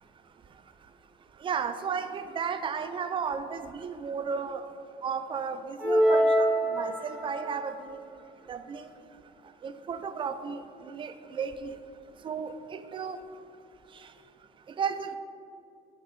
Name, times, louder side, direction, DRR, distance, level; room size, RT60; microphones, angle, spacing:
voice 1, 1.4-4.6 5.0-6.5 6.7-8.1 8.5-8.8 9.6-11.7 12.2-13.2 14.8-15.2, right 6 dB, 30° right, 10 dB, 0.3 m, -34 dB
sound 1, 5.8-7.5, equal, 10° right, 1.4 m, -24 dB
6.0 x 4.3 x 4.1 m, 2.5 s
cardioid pair, 110°, 17 cm